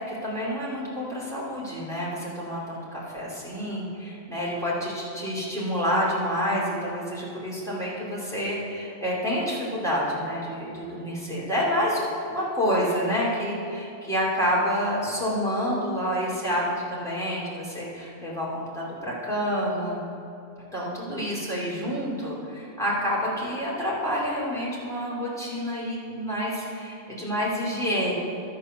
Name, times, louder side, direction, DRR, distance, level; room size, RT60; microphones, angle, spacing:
voice 1, 0.1-20.0 20.7-28.1, equal, ahead, -7 dB, 2.4 m, -28 dB
13.0 x 4.3 x 6.5 m, 2.7 s
omnidirectional pair, 1.4 m